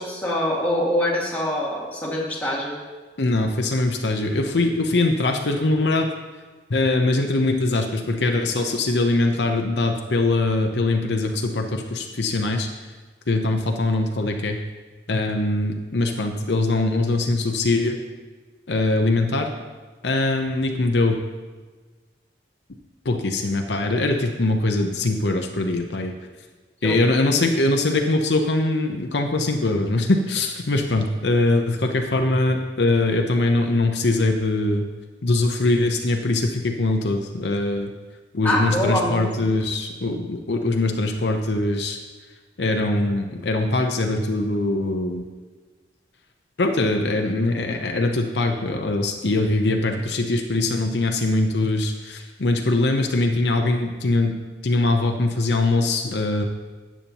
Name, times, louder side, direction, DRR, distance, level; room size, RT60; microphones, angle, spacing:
voice 1, 0.0-2.8 26.8-27.0 38.4-39.3, left 1 dB, 10° left, -5 dB, 1.9 m, -24 dB
voice 2, 3.2-6.1 6.7-12.7 13.3-14.6 15.1-18.0 18.7-19.5 20.0-21.2 23.0-26.1 26.8-34.9 35.2-37.9 38.3-42.0 42.6-45.3 46.6-56.4, left 2 dB, 70° left, 3 dB, 0.7 m, -22 dB
12.5 x 8.4 x 2.9 m, 1.4 s
head